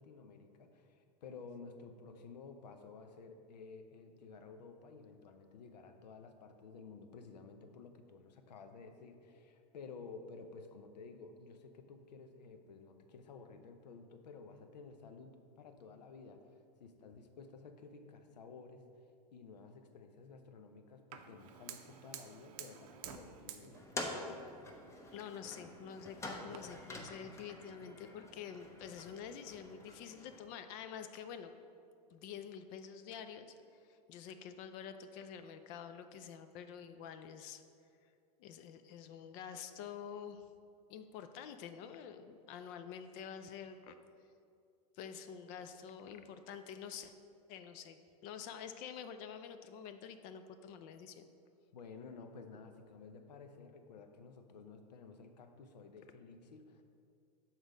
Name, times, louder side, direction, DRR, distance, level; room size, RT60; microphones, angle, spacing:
voice 1, 0.0-23.8 51.7-56.8, left 4 dB, 85° left, 7 dB, 0.7 m, -53 dB
Fire, 21.1-26.6, right 9 dB, 55° right, 0.6 m, -53 dB
sound 1, 23.7-30.5, left 1 dB, 15° left, 0.7 m, -47 dB
voice 2, 25.1-31.5 32.1-37.6 38.4-40.4 40.9-44.0 44.9-47.1 47.5-51.2, left 7 dB, 45° left, 9 dB, 0.4 m, -48 dB
6.1 x 4.0 x 5.0 m, 2.4 s
hypercardioid pair, 120°, 21 cm